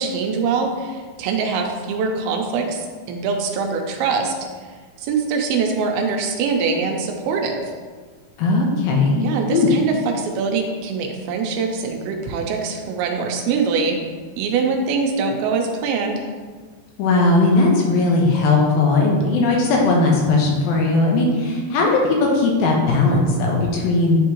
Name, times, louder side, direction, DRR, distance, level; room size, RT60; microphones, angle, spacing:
voice 1, 0.0-4.3 5.0-7.7 9.2-14.0 14.4-16.3, right 5 dB, 85° right, 2 dB, 2.6 m, -23 dB
voice 2, 8.4-9.7 17.0-21.9 22.2-24.2, left 3 dB, 75° left, -1 dB, 2.6 m, -18 dB
10.0 x 3.5 x 3.0 m, 1.5 s
omnidirectional pair, 4.4 m